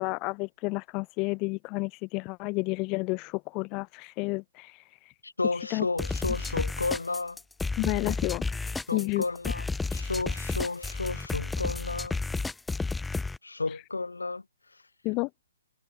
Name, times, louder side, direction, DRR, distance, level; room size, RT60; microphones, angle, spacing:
voice 1, 0.0-5.1 5.5-5.9 7.8-9.2 13.7-13.8 15.0-15.3, left 27 dB, 25° left, 2.4 m, -31 dB
voice 2, 5.2-7.4 8.9-12.2 13.4-14.8, left 3 dB, 70° left, 5.6 m, -32 dB
sound 1, 6.0-13.4, left 3 dB, 5° left, 1.1 m, -32 dB
figure-of-eight pair, 130°, 0 cm